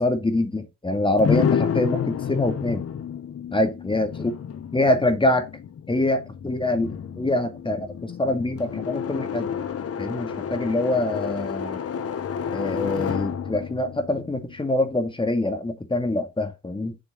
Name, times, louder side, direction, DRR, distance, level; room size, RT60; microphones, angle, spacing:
voice 1, 0.0-2.8 3.5-4.3 4.7-5.5 5.9-9.5 10.0-11.8 12.5-17.0, left 1 dB, 15° left, 2.3 m, -25 dB
sound 1, 1.2-15.0, left 7 dB, 50° left, 1.4 m, -30 dB
7.3 x 6.7 x 4.3 m
cardioid pair, 90°, 30 cm